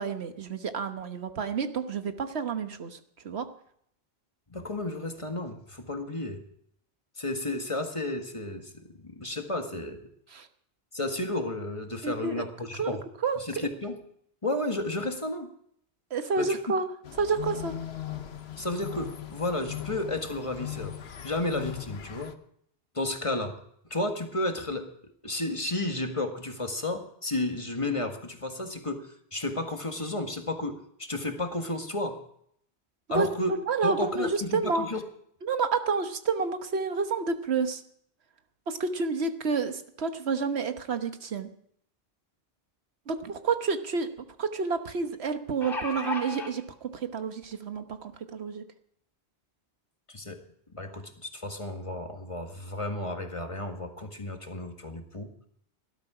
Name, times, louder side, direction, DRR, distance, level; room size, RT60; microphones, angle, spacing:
voice 1, 0.0-3.5 10.3-10.5 12.0-12.4 12.8-13.0 13.2-13.4 16.1-16.9 17.2-17.7 33.1-34.9 35.4-37.8 38.7-41.5 43.1-44.1 44.4-48.6, right 4 dB, 90° right, 8 dB, 1.4 m, -29 dB
voice 2, 4.5-6.4 7.2-10.1 10.9-13.0 13.4-13.9 14.4-15.5 16.4-16.6 18.6-21.0 21.2-22.3 22.9-23.6 23.9-24.9 25.2-32.2 33.1-33.6 33.8-35.0 50.1-50.4 50.7-55.3, left 2 dB, 30° left, 5 dB, 1.7 m, -32 dB
sound 1, 17.0-22.3, left 11 dB, 80° left, 1.2 m, -39 dB
sound 2, 43.2-43.3 43.6-43.7 45.3-46.5 47.4-47.5 47.9-48.0, left 3 dB, 60° left, 3.4 m, -34 dB
19.0 x 12.5 x 4.9 m, 0.68 s
omnidirectional pair, 1.1 m